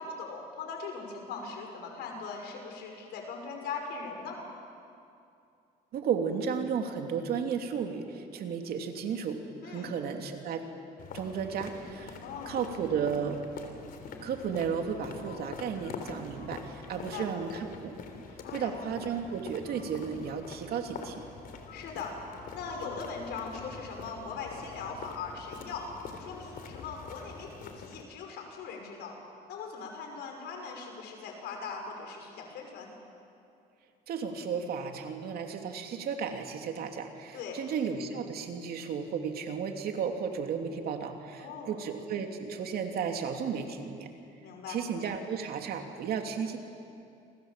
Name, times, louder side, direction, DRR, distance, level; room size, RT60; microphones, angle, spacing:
voice 1, 0.0-4.4 9.6-9.9 12.2-12.6 16.9-17.3 18.4-18.7 21.7-22.1 22.5-25.9 26.2-29.1 29.5-32.9 37.3-37.6 41.4-41.8 44.4-44.8, left 5 dB, 80° left, 3 dB, 6.0 m, -40 dB
voice 2, 5.9-10.7 11.1-12.2 12.5-13.4 14.2-18.0 18.5-21.2 34.1-44.1 44.7-46.6, right 6 dB, 65° right, 4 dB, 2.9 m, -34 dB
sound 1, 11.0-28.0, left 5 dB, 60° left, 3.5 m, -45 dB
29.0 x 25.0 x 7.5 m, 2.6 s
cardioid pair, 110°, 17 cm